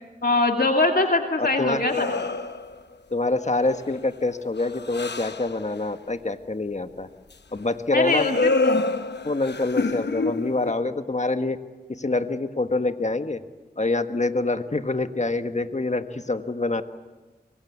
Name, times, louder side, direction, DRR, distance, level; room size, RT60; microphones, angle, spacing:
voice 1, 0.2-2.1 7.9-8.7, left 2 dB, 60° left, 3 dB, 2.5 m, -22 dB
voice 2, 1.4-1.8 3.1-7.1 7.5-8.3 9.2-11.6 11.9-13.4 13.8-16.8, left 2 dB, 45° left, 8 dB, 1.5 m, -26 dB
sound 1, 1.9-2.8 3.4-3.9 4.3-5.6 8.1-10.7, left 3 dB, 80° left, 1.0 m, -27 dB
24.5 x 23.0 x 8.3 m, 1.3 s
wide cardioid pair, 50°, 17 cm